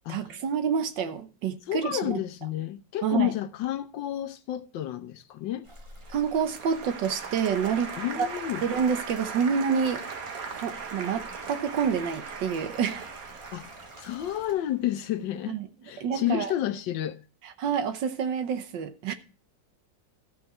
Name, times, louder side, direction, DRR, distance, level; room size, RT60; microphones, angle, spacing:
voice 1, 0.1-2.2 3.0-3.3 6.1-8.3 8.6-10.0 10.6-13.1 15.5-15.7 16.0-16.5 17.4-19.1, right 7 dB, 80° right, 1.7 m, -28 dB
voice 2, 1.7-5.7 8.0-8.6 13.5-13.7 14.0-15.6 15.8-17.2, left 12 dB, 90° left, 1.5 m, -30 dB
sound 1, 5.6-14.5, equal, 15° right, 1.8 m, -49 dB
Applause, 6.1-15.1, right 5 dB, 55° right, 1.5 m, -39 dB
14.0 x 6.2 x 4.3 m
omnidirectional pair, 1.9 m